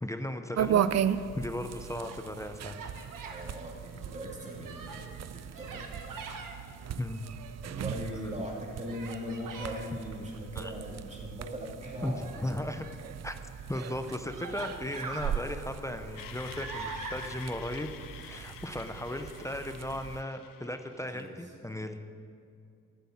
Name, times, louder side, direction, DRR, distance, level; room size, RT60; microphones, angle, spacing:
voice 1, 0.0-0.9 1.3-2.8 7.0-7.2 10.6-10.7 12.0-12.8 13.2-13.4 13.7-17.9 18.2-22.0, left 1 dB, 10° left, 7 dB, 0.6 m, -36 dB
sound 1, 0.6-20.2, right 9 dB, 50° right, 0.4 m, -37 dB
Human voice, 1.7-2.2 2.6-3.5 4.0-5.1 5.5-6.5 7.2-8.0 8.9-9.9 12.1-13.1 13.8-13.9 14.3-15.4 15.9-17.4, right 5 dB, 75° right, 1.4 m, -44 dB
voice 2, 3.3-6.2 6.6-7.0 7.6-12.6 21.1-21.3, equal, 20° right, -2 dB, 2.5 m, -40 dB
sound 2, 16.2-21.2, left 9 dB, 80° left, 0.7 m, -48 dB
12.0 x 8.5 x 7.3 m, 2.4 s
cardioid pair, 105°, 33 cm